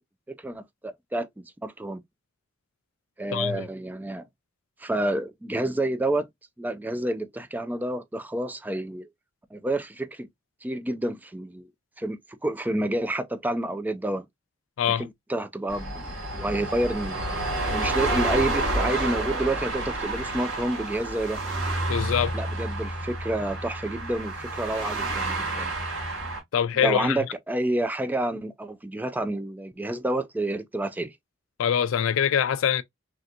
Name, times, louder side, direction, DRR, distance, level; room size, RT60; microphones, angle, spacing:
voice 1, 0.3-2.0 3.2-4.3 4.8-6.3 6.6-9.1 9.5-10.3 10.6-11.7 12.0-14.3 15.0-17.2 17.7-21.4 22.3-25.7 26.7-31.1, right 1 dB, 10° right, 0.3 m, -29 dB
voice 2, 3.3-3.7 14.8-15.0 21.9-22.3 26.5-27.3 31.6-32.8, left 8 dB, 85° left, 0.4 m, -24 dB
sound 1, 15.7-26.4, right 2 dB, 80° right, 2.0 m, -29 dB
3.3 x 2.7 x 2.4 m
head